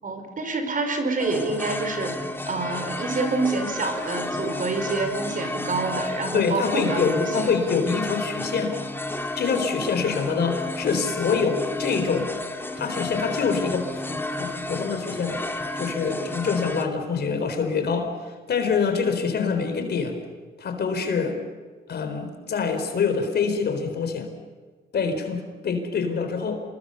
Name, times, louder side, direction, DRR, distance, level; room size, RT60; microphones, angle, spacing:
voice 1, 0.0-7.5, right 3 dB, 45° right, 6 dB, 5.0 m, -27 dB
sound 1, 1.2-16.8, left 2 dB, 10° left, 2.3 m, -32 dB
voice 2, 6.3-8.8 9.4-12.3 12.8-15.4 15.8-20.2 20.6-21.4 21.9-24.3 24.9-26.6, left 5 dB, 55° left, 7 dB, 4.2 m, -25 dB
27.5 x 21.5 x 7.0 m, 1.4 s
cardioid pair, 90°, 20 cm